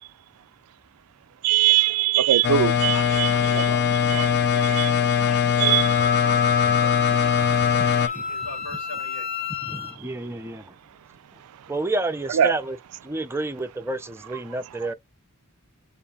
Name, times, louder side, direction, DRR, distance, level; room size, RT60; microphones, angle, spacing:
voice 1, 1.4-3.3 3.6-3.7 4.1-4.3 4.7-4.9 5.6-5.8 12.3-12.5, right 12 dB, 80° right, 0.4 m, -20 dB
sound 1, 2.4-8.1, left 7 dB, 50° left, 0.5 m, -21 dB
voice 2, 2.9-9.3, left 3 dB, 70° left, 2.0 m, -40 dB
Wind instrument woodwind instrument, 5.7-9.9, left 6 dB, 25° left, 1.1 m, -28 dB
voice 3, 9.7-10.7 11.7-12.8 13.0-14.9, right 2 dB, 10° right, 0.5 m, -29 dB
6.9 x 2.6 x 2.3 m
head